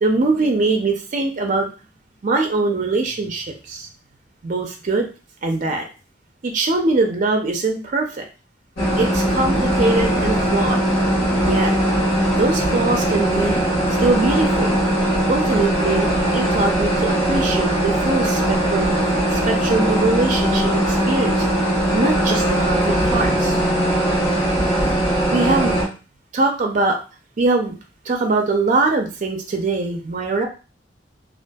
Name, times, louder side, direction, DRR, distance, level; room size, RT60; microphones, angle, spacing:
voice 1, 0.0-1.7 2.2-3.9 4.4-5.1 5.4-5.9 6.4-8.2 9.0-10.8 11.4-11.7 12.4-13.6 14.0-14.8 15.3-19.0 19.3-21.5 21.9-23.6 25.3-25.7 26.3-27.0 27.4-27.7 28.1-30.5, right 3 dB, 45° right, 3 dB, 0.4 m, -22 dB
sound 1, 8.8-25.9, right 1 dB, 65° left, 1.3 m, -20 dB
2.5 x 2.4 x 2.2 m, 0.34 s
head